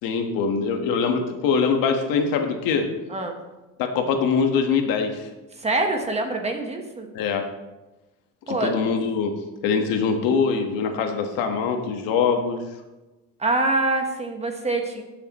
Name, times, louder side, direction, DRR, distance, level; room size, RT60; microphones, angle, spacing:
voice 1, 0.0-2.9 3.8-5.3 7.1-7.5 8.5-12.6, left 5 dB, 70° left, 4 dB, 1.5 m, -23 dB
voice 2, 5.6-7.1 8.5-8.7 13.4-15.0, right 2 dB, 15° right, 4 dB, 1.2 m, -25 dB
18.5 x 6.9 x 3.1 m, 1.1 s
cardioid pair, 140°, 36 cm